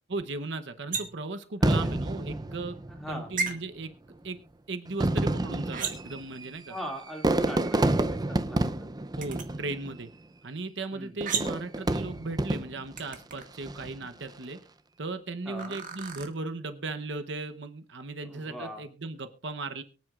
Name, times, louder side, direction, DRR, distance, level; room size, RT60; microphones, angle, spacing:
voice 1, 0.1-2.8 3.1-3.9 4.2-4.4 4.7-6.8 7.4-7.7 9.2-10.1 10.4-14.6 15.0-19.8, right 3 dB, 65° right, 8 dB, 0.9 m, -37 dB
sound 1, 0.9-1.3 3.4-3.5 5.7-6.2 9.2-9.4 11.3-11.7 13.0-13.4 15.6-16.3, right 5 dB, 45° right, 1.8 m, -33 dB
Fireworks, 1.6-3.2 4.1-4.2 4.9-10.1 11.2-13.0 13.5-14.0, right 2 dB, 20° right, 0.5 m, -29 dB
voice 2, 2.9-3.3 6.7-8.9 10.9-11.2 15.5-15.8 18.3-18.8, equal, ahead, 1 dB, 2.3 m, -40 dB
23.5 x 9.4 x 2.4 m, 0.36 s
head